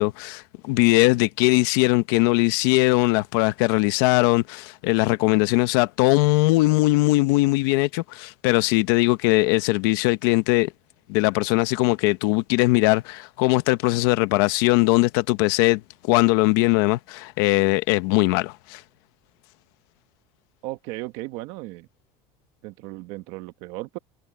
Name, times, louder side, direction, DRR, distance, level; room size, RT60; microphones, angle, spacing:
voice 1, 0.0-10.7 11.1-18.8, left 21 dB, 75° left, 1.1 m, -20 dB
voice 2, 20.6-21.9 22.6-24.0, right 19 dB, 60° right, 1.6 m, -35 dB
cardioid pair, 165°, 12 cm